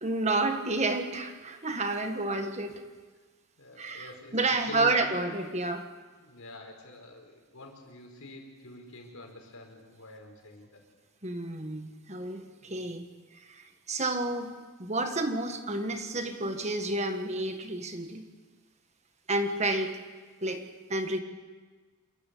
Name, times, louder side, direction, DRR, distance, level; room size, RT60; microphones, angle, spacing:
voice 1, 0.0-2.8 3.8-5.8 11.2-13.1 13.5-14.5 14.8-18.3 19.3-20.0 20.4-20.6 20.9-21.2, right 2 dB, 30° right, 6 dB, 1.5 m, -30 dB
voice 2, 3.6-5.0 6.2-10.8 12.6-12.9, left 2 dB, 85° left, 2 dB, 5.0 m, -46 dB
26.5 x 14.5 x 8.4 m, 1.4 s
head